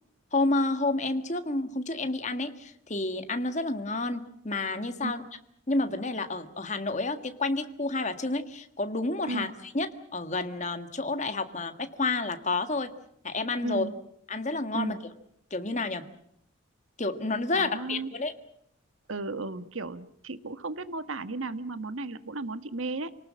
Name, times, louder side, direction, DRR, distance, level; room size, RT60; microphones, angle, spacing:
voice 1, 0.3-5.2 5.7-9.5 9.7-9.9 10.1-12.9 13.2-13.9 14.3-14.9 15.5-16.0 17.0-18.3, left 2 dB, 35° left, 9 dB, 1.7 m, -30 dB
voice 2, 13.6-13.9 14.7-15.0 17.5-18.1 19.1-23.1, right 3 dB, 80° right, 12 dB, 1.5 m, -35 dB
28.0 x 19.0 x 7.5 m, 0.73 s
head